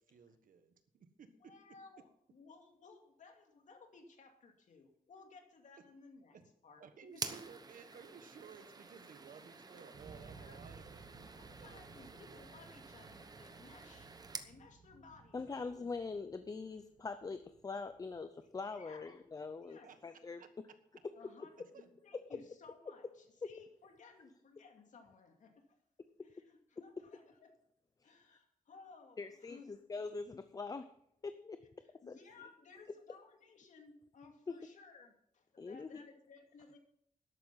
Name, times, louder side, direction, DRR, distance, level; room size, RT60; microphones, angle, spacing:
voice 1, 0.0-1.5 6.3-6.5 6.8-12.7 19.8-20.0 20.4-20.5 21.6-21.9, right 6 dB, 75° right, 9 dB, 1.5 m, -57 dB
voice 2, 1.4-6.4 6.6-6.9 7.1-7.3 10.2-10.8 11.4-15.8 18.4-19.1 19.6-19.9 21.1-25.8 26.2-27.5 28.0-29.8 31.8-36.8, left 4 dB, 60° left, 4 dB, 2.5 m, -59 dB
sound 1, 7.1-14.5, right 4 dB, 30° right, 1.0 m, -49 dB
sound 2, 9.9-18.8, right 4 dB, 45° right, 1.7 m, -58 dB
voice 3, 15.3-20.4 23.4-23.5 29.2-30.9 31.2-31.6 32.1-32.2 34.5-34.6 35.6-36.0, left 4 dB, 25° left, 10 dB, 0.6 m, -43 dB
12.5 x 11.5 x 5.7 m, 0.71 s
wide cardioid pair, 180°, 14 cm